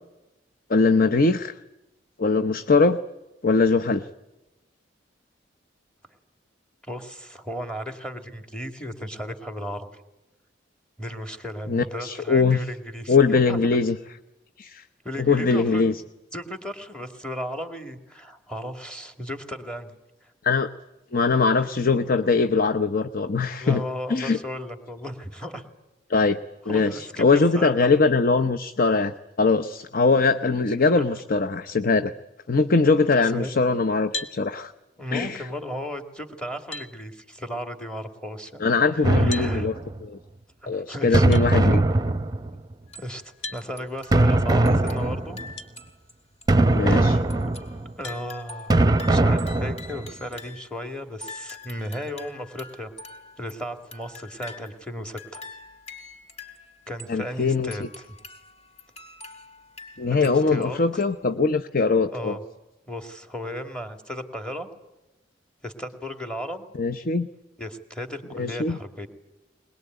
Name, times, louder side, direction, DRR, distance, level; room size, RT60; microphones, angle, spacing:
voice 1, 0.7-1.6 2.2-3.0 3.4-4.1 11.7-12.6 13.1-14.0 14.6-14.8 15.2-16.0 20.4-20.7 21.1-23.8 24.1-24.4 26.1-26.4 26.6-32.1 32.5-34.7 35.1-35.5 38.6-40.2 40.7-41.8 46.7-47.2 57.1-57.7 60.0-62.4 66.8-67.3 68.3-68.8, left 4 dB, 50° left, 10 dB, 0.8 m, -21 dB
voice 2, 6.9-9.9 11.0-13.6 15.0-15.9 16.3-20.3 23.6-25.7 26.7-27.9 31.0-31.1 32.9-33.7 35.0-38.6 39.1-39.7 40.6-41.3 43.0-45.4 46.9-47.0 48.0-48.7 49.1-52.9 53.4-55.4 56.9-58.1 60.1-60.8 62.1-62.4 62.9-64.7 65.6-66.7 67.6-69.1, equal, 5° left, 7 dB, 2.3 m, -35 dB
sound 1, 34.1-34.4 36.1-36.2 36.7-36.9 39.3-39.5 41.3-41.5 43.4-43.6 45.6-45.7 46.4-46.5 48.0-48.2, left 3 dB, 85° left, 1.8 m, -34 dB
sound 2, 39.0-40.1 41.1-42.7 44.1-45.5 46.5-47.9 48.7-50.1, right 2 dB, 20° right, 0.9 m, -21 dB
sound 3, 42.9-43.3 43.6-46.1 46.4-46.5 47.3-50.8 51.2-54.9 55.2-57.2 57.7-60.7 61.0-61.1, left 3 dB, 35° left, 4.4 m, -45 dB
22.0 x 21.5 x 9.3 m, 0.98 s
head